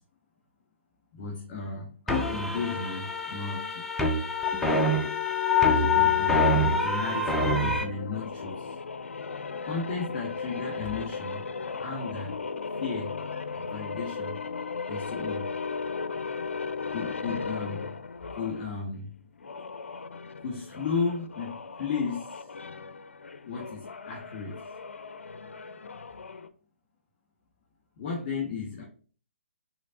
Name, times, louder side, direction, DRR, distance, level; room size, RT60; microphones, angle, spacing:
voice 1, 1.1-3.8 5.6-8.8 9.6-11.5 11.8-12.4 12.8-13.2 13.5-14.4 14.9-15.5 16.9-17.9 18.3-19.1 20.4-22.5 23.4-24.6 28.0-28.8, left 4 dB, 35° left, -3 dB, 1.6 m, -34 dB
sound 1, 2.1-7.8, left 3 dB, 5° left, 0.5 m, -25 dB
sound 2, 7.0-18.7 19.3-26.5, left 4 dB, 70° left, 0.4 m, -37 dB
6.2 x 3.1 x 2.6 m, 0.40 s
figure-of-eight pair, 135°, 7 cm